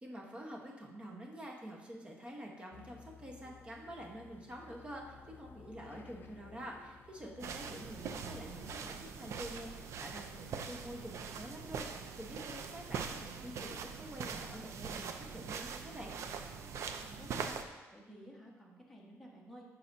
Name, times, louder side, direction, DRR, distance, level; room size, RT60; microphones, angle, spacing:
voice 1, 0.0-16.1, equal, 20° right, 0 dB, 1.2 m, -47 dB
sound 1, 2.7-8.9, left 7 dB, 40° left, 0.5 m, -56 dB
sound 2, 7.4-17.6, right 6 dB, 70° right, 0.5 m, -42 dB
voice 2, 16.5-19.6, equal, ahead, -4 dB, 1.5 m, -54 dB
9.9 x 5.8 x 2.7 m, 1.2 s
cardioid pair, 120°, 5 cm